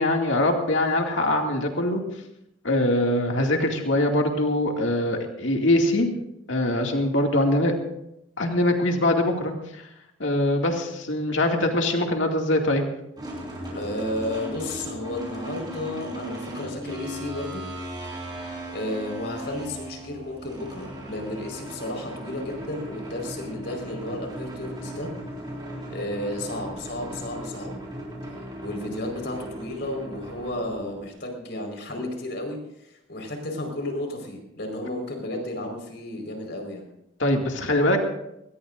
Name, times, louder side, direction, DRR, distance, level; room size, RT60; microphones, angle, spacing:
voice 1, 0.0-2.0 2.6-6.1 6.5-7.7 8.4-9.8 10.2-12.8 37.2-38.0, left 1 dB, 80° left, 2 dB, 2.3 m, -23 dB
sound 1, 13.2-31.1, right 1 dB, 20° right, 5.5 m, -37 dB
voice 2, 13.7-17.6 18.7-25.1 25.9-27.7 28.6-36.8, left 1 dB, 60° left, 2 dB, 4.7 m, -33 dB
22.5 x 19.5 x 2.6 m, 0.83 s
head